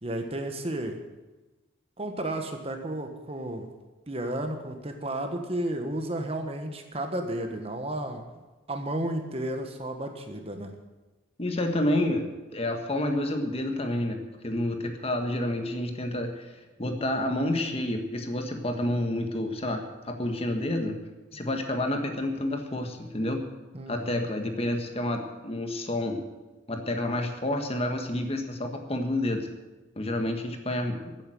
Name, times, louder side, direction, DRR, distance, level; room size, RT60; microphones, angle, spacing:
voice 1, 0.0-1.0 2.0-3.7 4.1-8.2 8.7-10.7 23.7-24.2, right 1 dB, 30° right, 5 dB, 1.4 m, -32 dB
voice 2, 11.4-12.3 12.5-16.4 16.8-21.0 21.3-23.4 23.9-26.2 26.7-29.5 30.0-31.1, left 1 dB, 30° left, 5 dB, 1.5 m, -29 dB
14.5 x 9.0 x 7.7 m, 1.2 s
head